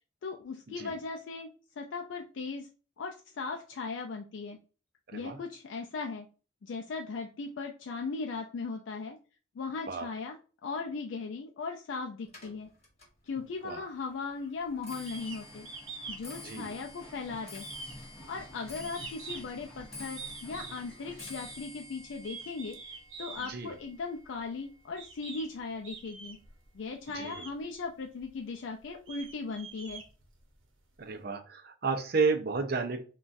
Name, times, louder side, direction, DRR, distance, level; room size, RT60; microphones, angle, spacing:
voice 1, 0.2-1.5 1.8-2.7 3.0-4.6 5.1-6.3 6.6-9.2 9.6-10.4 10.6-12.7 13.2-15.7 16.1-17.7 18.3-26.4 26.7-30.0, left 4 dB, 70° left, 2 dB, 0.4 m, -38 dB
Clock, 12.3-25.6 25.9-26.4 27.2-27.3 27.6-28.0 28.3-28.4, left 2 dB, 35° left, 1.1 m, -50 dB
sound 1, 15.1-21.6, equal, 5° left, 0.7 m, -52 dB
sound 2, 15.1-15.4 15.7-16.2 16.6-17.2 17.6-19.6 20.2-20.9 21.4-21.6 22.2-23.5 24.4-24.5 25.0-25.5 25.8-26.5 27.1-27.5 28.2-28.3 28.8-30.6, right 4 dB, 85° right, 0.8 m, -44 dB
voice 2, 16.4-16.7 23.4-23.7 27.1-27.5 31.0-33.0, right 4 dB, 50° right, 5 dB, 0.5 m, -32 dB
3.8 x 2.3 x 2.5 m, 0.36 s
head